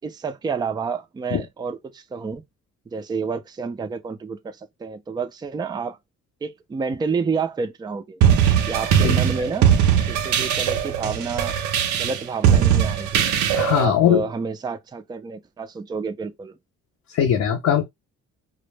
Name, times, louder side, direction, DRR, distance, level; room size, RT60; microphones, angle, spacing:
voice 1, 0.0-2.4 2.9-6.0 6.4-8.2 8.7-9.7 10.1-11.6 11.9-13.3 13.7-16.5, right 5 dB, 15° right, 0.3 m, -29 dB
sound 1, 8.2-13.9, right 9 dB, 80° right, 0.5 m, -20 dB
voice 2, 13.5-14.2 17.1-17.8, left 9 dB, 60° left, 0.6 m, -20 dB
2.1 x 2.0 x 3.1 m
cardioid pair, 90°, 30 cm